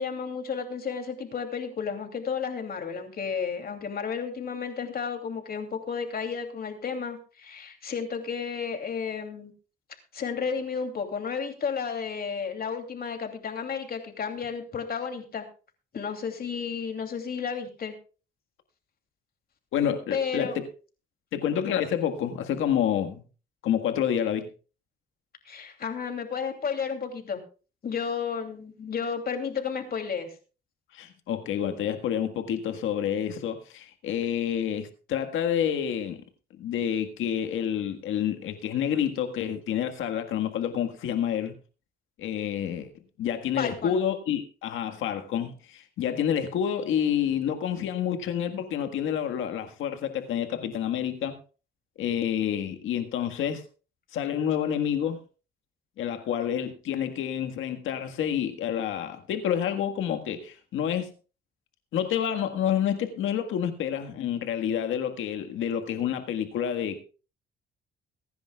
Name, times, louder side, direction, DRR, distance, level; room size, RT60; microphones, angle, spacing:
voice 1, 0.0-9.5 10.1-15.4 15.9-17.9 20.1-20.6 25.4-27.4 27.8-30.3 43.6-44.0, left 6 dB, 50° left, 2.9 m, -32 dB
voice 2, 19.7-20.6 21.3-23.2 23.6-24.5 30.9-36.2 36.5-41.5 42.2-42.9 43.2-51.4 52.0-53.6 54.1-55.2 56.0-61.1 61.9-67.0, left 9 dB, 85° left, 1.7 m, -28 dB
23.0 x 10.5 x 2.4 m
cardioid pair, 90°, 20 cm